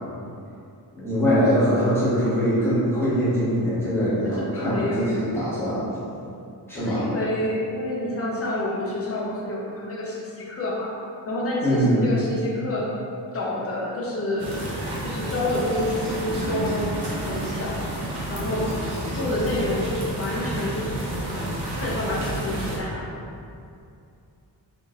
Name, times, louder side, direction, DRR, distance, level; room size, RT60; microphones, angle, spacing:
voice 1, 0.9-5.9 6.7-7.1 11.6-12.0, equal, 5° left, -12 dB, 0.9 m, -22 dB
voice 2, 1.6-2.0 4.2-5.2 6.7-10.9 11.3-12.9 13.3-14.5 15.0-16.9 17.2-17.9 18.3-18.7 19.1-21.0 21.7-23.1, left 1 dB, 35° left, -5 dB, 0.5 m, -28 dB
sound 1, 14.4-22.8, right 1 dB, 80° right, 0.7 m, -30 dB
3.6 x 2.6 x 2.3 m, 2.6 s
wide cardioid pair, 170°, 41 cm